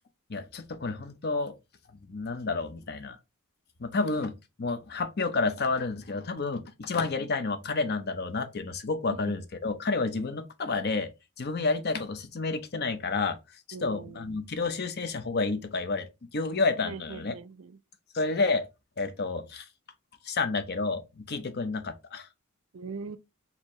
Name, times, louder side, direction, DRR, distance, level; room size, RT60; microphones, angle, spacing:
voice 1, 0.3-1.5 2.1-3.2 3.8-11.1 11.4-13.4 13.8-16.1 16.3-17.3 18.1-18.7 19.0-19.6 20.2-22.3, left 3 dB, 50° left, 0.6 m, -30 dB
voice 2, 13.7-14.3 16.8-17.8 22.7-23.2, right 4 dB, 70° right, 0.4 m, -41 dB
4.4 x 2.8 x 3.1 m
head